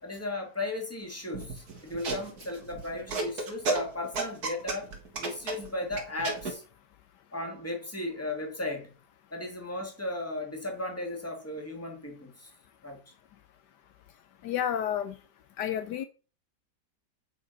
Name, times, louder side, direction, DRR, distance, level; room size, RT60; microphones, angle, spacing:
voice 1, 0.0-4.9 5.2-6.6 7.3-9.0 9.3-12.5 12.8-13.1, left 2 dB, 10° left, 2.2 m, -36 dB
sound 1, 1.3-6.5, right 3 dB, 60° right, 2.3 m, -33 dB
voice 2, 14.4-15.2 15.6-16.1, left 9 dB, 75° left, 1.3 m, -30 dB
8.9 x 5.1 x 5.4 m
omnidirectional pair, 1.9 m